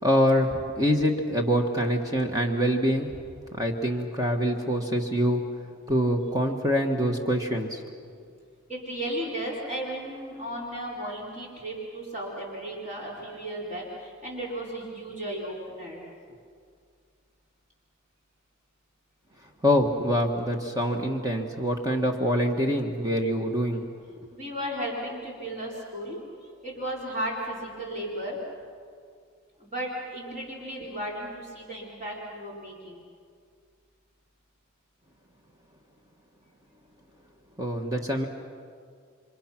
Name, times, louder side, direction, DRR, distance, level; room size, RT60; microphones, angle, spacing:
voice 1, 0.0-3.2 3.5-5.4 5.9-7.8 19.6-23.8 37.6-38.3, equal, 15° right, 2 dB, 1.5 m, -25 dB
voice 2, 8.7-16.0 24.3-28.4 29.6-33.0, right 1 dB, 35° right, -4 dB, 4.7 m, -35 dB
29.5 x 25.5 x 6.0 m, 2.1 s
head